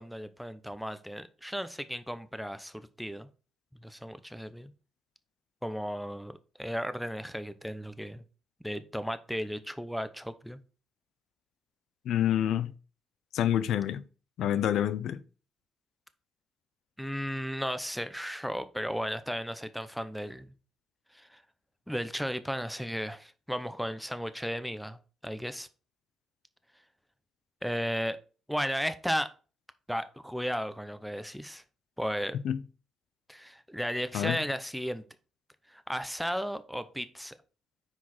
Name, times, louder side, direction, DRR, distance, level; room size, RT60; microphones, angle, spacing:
voice 1, 0.0-3.3 3.8-4.7 5.6-8.2 8.6-10.6 17.0-20.5 21.1-21.4 21.9-25.7 27.6-28.2 28.5-29.3 29.9-31.6 32.0-32.4 33.3-35.0 35.7-37.3, equal, ahead, 0.7 m, -35 dB
voice 2, 12.0-12.7 13.3-14.0 14.4-15.2 32.4-32.6 34.1-34.4, left 10 dB, 75° left, 0.6 m, -27 dB
6.1 x 4.7 x 4.3 m
cardioid pair, 90°, 0 cm